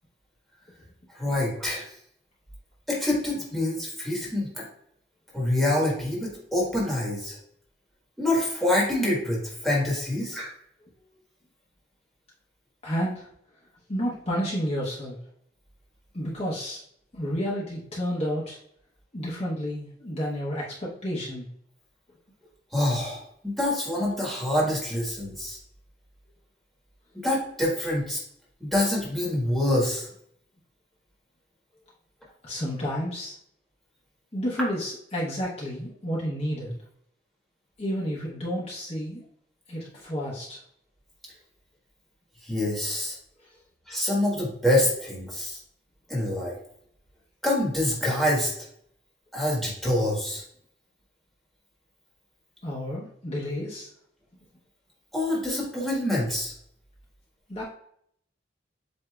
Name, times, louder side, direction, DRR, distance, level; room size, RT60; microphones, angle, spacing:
voice 1, 1.1-1.8 2.9-4.7 5.3-7.4 8.2-10.5 22.7-25.6 27.1-28.2 28.6-30.1 42.4-43.1 43.9-45.6 46.1-46.5 47.4-48.5 49.3-50.4 55.1-56.5, left 1 dB, ahead, -4 dB, 1.3 m, -26 dB
voice 2, 12.8-13.3 13.9-15.2 16.1-16.8 17.1-18.6 19.1-21.5 32.4-33.3 34.3-36.7 37.8-39.2 39.7-40.6 52.6-53.9 57.5-57.6, equal, 35° left, -6 dB, 0.8 m, -30 dB
7.8 x 2.7 x 2.3 m, 0.68 s
head